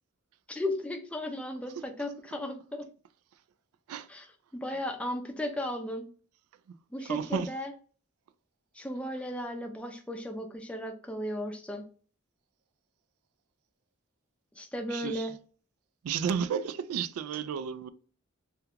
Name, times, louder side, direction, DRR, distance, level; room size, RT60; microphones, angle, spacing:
voice 1, 0.5-2.9 4.1-6.0 6.9-7.7 8.7-11.8 14.5-15.3, left 1 dB, 5° left, 0.4 m, -35 dB
voice 2, 7.1-7.5 14.9-15.3 16.0-17.9, right 7 dB, 85° right, 0.3 m, -32 dB
2.8 x 2.2 x 3.5 m
head